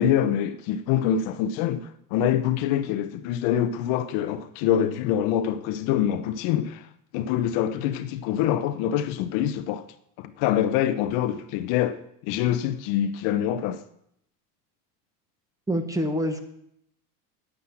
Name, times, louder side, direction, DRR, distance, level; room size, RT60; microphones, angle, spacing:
voice 1, 0.0-6.9 7.1-9.9 10.2-13.8, left 10 dB, 65° left, 1.0 m, -25 dB
voice 2, 15.7-16.4, equal, 5° right, 1.2 m, -26 dB
9.9 x 9.5 x 7.1 m
cardioid pair, 140°, 46 cm